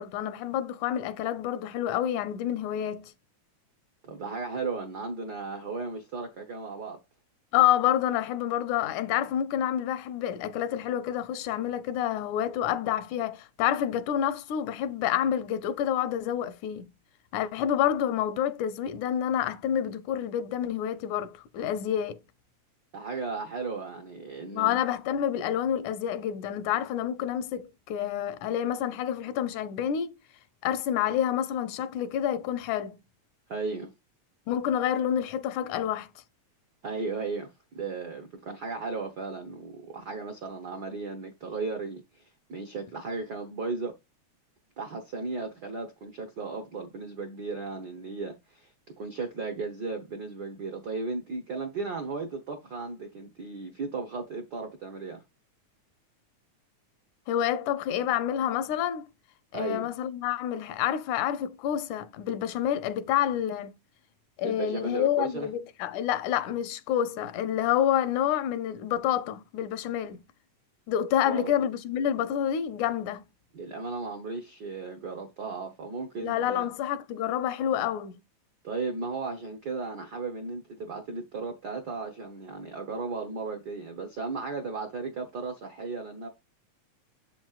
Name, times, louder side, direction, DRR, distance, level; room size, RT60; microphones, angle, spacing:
voice 1, 0.0-3.1 7.5-16.9 17.3-22.2 24.5-30.2 30.6-33.0 34.5-36.1 57.3-59.1 59.5-63.7 64.4-70.2 70.9-73.3 76.2-78.2, left 10 dB, 85° left, 2.1 m, -28 dB
voice 2, 4.0-7.0 22.9-24.8 33.5-33.9 36.8-37.5 37.7-43.9 44.8-48.7 49.0-55.2 59.5-59.9 64.4-65.5 71.2-71.5 73.5-76.7 78.6-86.3, right 4 dB, 80° right, 0.9 m, -35 dB
7.4 x 6.1 x 2.4 m
omnidirectional pair, 3.4 m